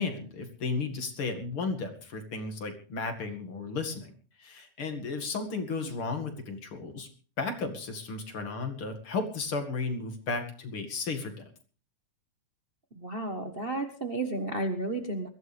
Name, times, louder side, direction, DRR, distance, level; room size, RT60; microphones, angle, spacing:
voice 1, 0.0-4.1 4.4-7.1 7.4-11.4, left 4 dB, 45° left, 6 dB, 2.7 m, -34 dB
voice 2, 12.9-15.3, right 2 dB, 70° right, 5 dB, 0.5 m, -32 dB
22.0 x 15.5 x 3.5 m, 0.38 s
omnidirectional pair, 3.6 m